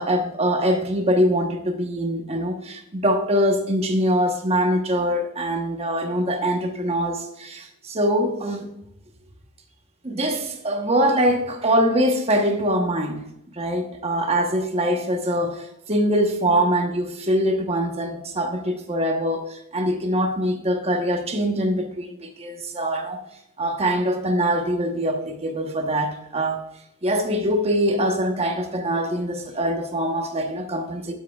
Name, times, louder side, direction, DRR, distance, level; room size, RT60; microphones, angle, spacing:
voice 1, 0.0-8.7 10.0-13.2 13.5-23.2 23.6-26.6 27.0-31.1, equal, 30° right, 1.1 m, -23 dB
12.5 x 7.6 x 2.4 m
head